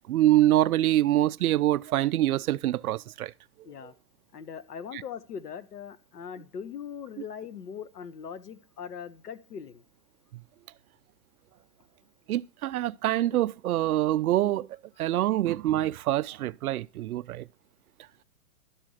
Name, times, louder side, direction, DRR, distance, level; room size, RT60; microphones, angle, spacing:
voice 1, 0.1-3.3 3.8-3.9 4.9-5.0 10.3-10.4 12.3-14.7 15.0-17.5, right 14 dB, 70° right, 0.5 m, -25 dB
voice 2, 4.3-9.8, left 7 dB, 85° left, 1.2 m, -40 dB
12.0 x 4.3 x 6.4 m
hypercardioid pair, 150°, 46 cm